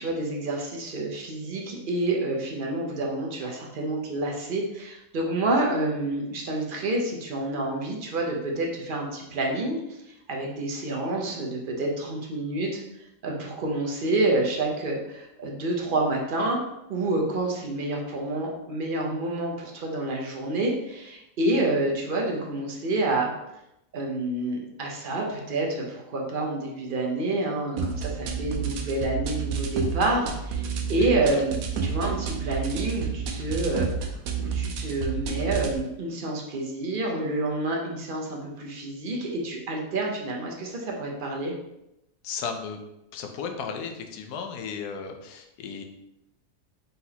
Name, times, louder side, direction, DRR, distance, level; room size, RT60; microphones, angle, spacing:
voice 1, 0.0-9.8 10.3-12.8 13.2-16.6 16.9-23.3 23.9-31.5 31.8-41.5, right 2 dB, 50° right, -1 dB, 0.6 m, -28 dB
sound 1, 27.8-35.8, right 6 dB, 70° right, 1.0 m, -30 dB
voice 2, 30.8-31.4 42.2-42.8 43.1-45.8, left 6 dB, 85° left, 4 dB, 1.2 m, -35 dB
4.1 x 4.0 x 2.8 m, 0.87 s
omnidirectional pair, 1.7 m